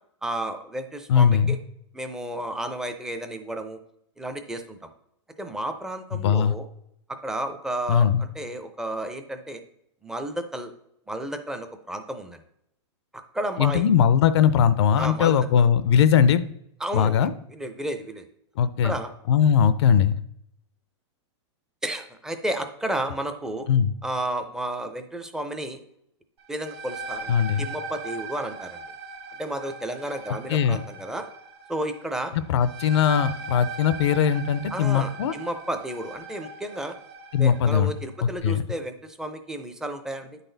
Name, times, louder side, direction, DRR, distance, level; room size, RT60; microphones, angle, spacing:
voice 1, 0.2-1.6 1.9-3.8 4.2-4.9 5.4-6.7 7.2-9.6 10.0-10.7 11.1-12.4 13.3-13.9 15.0-15.4 16.8-18.2 18.8-19.1 21.8-23.7 24.0-25.8 26.5-27.3 27.6-28.8 29.4-31.3 31.7-32.3 34.7-36.9 37.4-40.4, right 1 dB, 5° right, 7 dB, 0.5 m, -32 dB
voice 2, 1.1-1.6 6.2-6.5 7.9-8.2 13.6-16.4 16.9-17.3 18.6-18.9 19.3-20.2 23.7-23.9 27.3-27.7 30.5-30.8 32.3-35.3 37.3-37.9 38.2-38.6, left 8 dB, 65° left, 14 dB, 0.5 m, -20 dB
sound 1, 26.4-37.9, right 3 dB, 60° right, 1.5 m, -39 dB
9.7 x 4.1 x 3.9 m, 0.76 s
hypercardioid pair, 150°, 15 cm